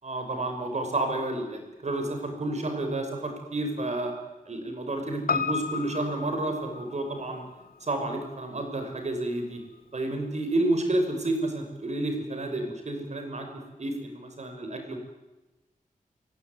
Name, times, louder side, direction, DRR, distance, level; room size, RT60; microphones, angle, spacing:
voice 1, 0.0-4.1 4.5-7.5 7.8-9.6 9.9-13.5 13.8-15.0, right 2 dB, 50° right, 5 dB, 5.9 m, -30 dB
Piano, 5.3-9.8 10.1-10.2, left 5 dB, 90° left, 1.1 m, -34 dB
29.5 x 17.5 x 9.6 m, 1.1 s
wide cardioid pair, 100°, 15 cm